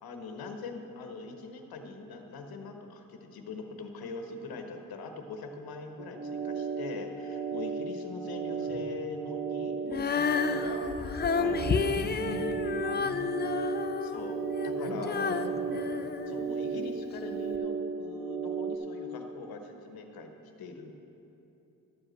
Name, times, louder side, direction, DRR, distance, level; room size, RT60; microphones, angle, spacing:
voice 1, 0.0-11.9 14.0-15.5 16.3-20.9, left 3 dB, 90° left, 5 dB, 1.0 m, -42 dB
sound 1, 6.0-18.8, right 5 dB, 60° right, 1.5 m, -35 dB
Female singing, 9.9-16.9 17.5-17.6, left 6 dB, 30° left, 0.4 m, -31 dB
voice 2, 11.4-12.5 12.8-13.2 14.8-16.1, right 1 dB, 80° right, -2 dB, 2.1 m, -41 dB
12.0 x 5.0 x 7.8 m, 3.0 s
cardioid pair, 75°, 35 cm